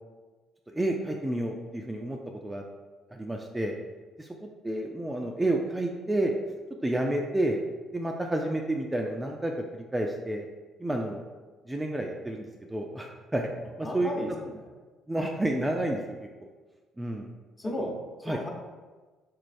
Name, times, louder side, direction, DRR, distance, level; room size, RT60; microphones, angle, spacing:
voice 1, 0.7-2.6 3.1-3.7 4.2-4.3 4.6-6.3 6.8-7.6 7.9-10.5 10.8-11.2 11.7-13.5 13.8-14.1 15.1-16.3 17.0-17.3 18.3-18.4, right 1 dB, 15° right, 1 dB, 0.4 m, -30 dB
voice 2, 13.8-14.7 17.6-18.5, left 1 dB, 25° left, 0 dB, 0.9 m, -35 dB
3.9 x 3.1 x 2.6 m, 1.3 s
supercardioid pair, 70°, 0 cm